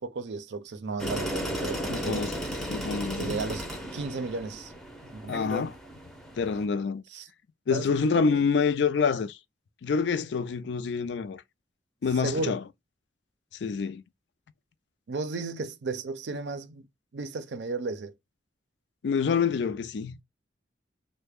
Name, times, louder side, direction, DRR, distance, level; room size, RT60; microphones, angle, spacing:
voice 1, 0.0-2.3 3.2-3.7 3.9-4.7 5.0-5.4 7.1-7.3 7.7-7.9 8.1-8.4 12.2-12.6 15.1-16.9 17.1-18.1, right 3 dB, 70° right, 0.5 m, -34 dB
sound 1, 1.0-6.7, equal, ahead, 0.6 m, -35 dB
voice 2, 1.9-2.3 2.7-3.4 5.3-5.8 6.4-7.0 7.7-9.4 9.8-11.4 12.0-12.6 13.6-14.0 19.0-20.2, left 5 dB, 70° left, 0.4 m, -27 dB
3.2 x 2.1 x 3.4 m
head